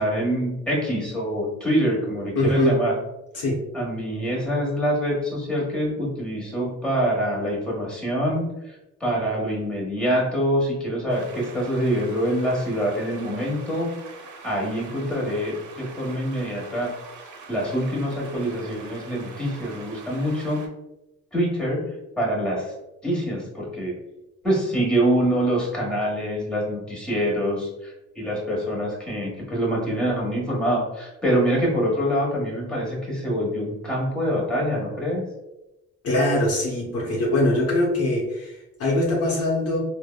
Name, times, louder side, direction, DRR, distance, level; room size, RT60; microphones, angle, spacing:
voice 1, 0.0-2.9 3.7-8.7 9.0-13.9 14.4-16.9 17.5-20.6 21.3-21.9 22.2-22.7 23.0-23.9 24.4-35.2, equal, 5° left, -5 dB, 1.1 m, -25 dB
voice 2, 2.3-2.8 3.3-3.6 36.0-39.8, left 1 dB, 55° left, -2 dB, 0.7 m, -22 dB
sound 1, 11.1-20.7, right 4 dB, 75° right, 0.6 m, -43 dB
3.4 x 2.1 x 2.2 m, 0.93 s
cardioid pair, 90°, 30 cm